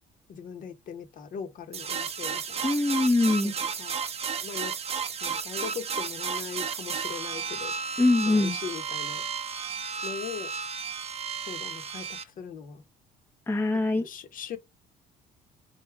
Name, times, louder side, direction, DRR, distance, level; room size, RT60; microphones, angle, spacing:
voice 1, 0.3-2.7 3.4-3.5 3.8-3.9 4.4-4.8 5.2-7.7 8.2-9.2 10.0-10.5 11.5-12.8 14.0-14.6, left 7 dB, 55° left, 0.9 m, -39 dB
sound 1, 1.7-12.2, right 6 dB, 35° right, 0.7 m, -33 dB
voice 2, 2.6-3.5 8.0-8.6 13.5-14.1, left 2 dB, 15° left, 0.7 m, -23 dB
3.4 x 2.8 x 4.5 m
cardioid pair, 110°, 17 cm